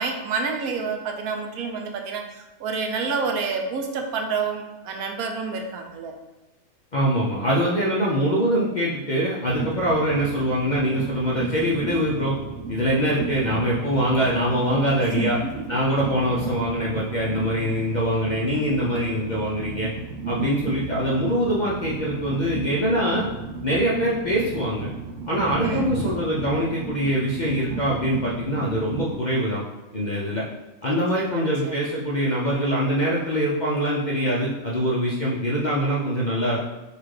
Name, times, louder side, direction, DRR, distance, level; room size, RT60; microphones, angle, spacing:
voice 1, 0.0-6.1 15.0-15.3 25.6-25.9 30.8-31.8, right 5 dB, 90° right, 3 dB, 1.1 m, -29 dB
voice 2, 6.9-12.3 12.7-15.4 15.7-19.9 20.3-23.3 23.6-24.9 25.3-29.6 29.9-30.4 30.8-36.6, equal, 55° left, -5 dB, 0.5 m, -23 dB
Train, 9.4-29.2, right 4 dB, 70° right, 0.9 m, -33 dB
4.0 x 2.5 x 4.7 m, 1.1 s
omnidirectional pair, 1.5 m